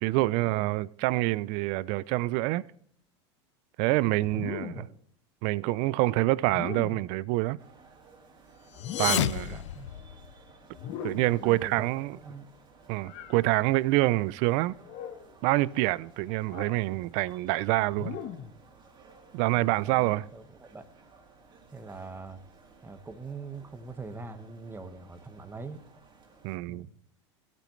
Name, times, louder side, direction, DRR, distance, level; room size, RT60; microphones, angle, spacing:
voice 1, 0.0-2.6 3.8-4.8 5.4-7.6 9.0-9.6 11.0-12.2 12.9-14.7 15.4-18.2 19.3-20.2 26.4-26.9, right 19 dB, 55° right, 0.5 m, -26 dB
sound 1, 4.3-5.0 6.4-7.2 8.7-9.5 10.7-11.5 13.0-13.4 14.8-15.3 16.4-16.8 17.9-18.6, left 9 dB, 55° left, 1.2 m, -39 dB
sound 2, 7.6-26.6, right 4 dB, 30° right, 2.8 m, -57 dB
sound 3, 8.7-10.6, left 13 dB, 85° left, 0.4 m, -31 dB
voice 2, 9.0-9.9 11.3-12.5 19.5-20.8 21.7-22.4 22.8-25.8 26.7-26.9, right 4 dB, 15° right, 1.4 m, -43 dB
16.0 x 12.0 x 3.2 m
hypercardioid pair, 105°, 15 cm